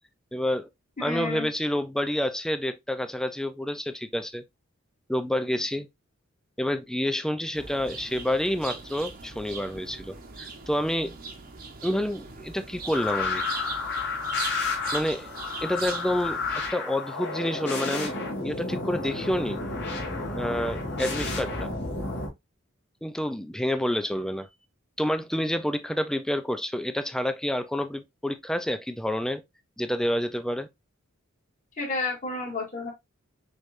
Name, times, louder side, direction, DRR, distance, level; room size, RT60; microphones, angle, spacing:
voice 1, 0.3-0.7 1.0-4.4 5.1-5.9 6.6-11.1 11.8-13.4 14.9-15.3 15.6-16.4 16.7-18.2 18.4-19.6 20.3-21.7 23.0-24.5 25.0-29.4 29.8-30.7, left 1 dB, 5° left, 0.4 m, -28 dB
voice 2, 1.0-1.5 31.8-32.9, left 3 dB, 40° left, 2.3 m, -31 dB
sound 1, 7.5-16.7, right 4 dB, 45° right, 1.1 m, -40 dB
sound 2, 12.9-22.3, left 3 dB, 55° left, 2.2 m, -31 dB
6.4 x 3.3 x 2.5 m
head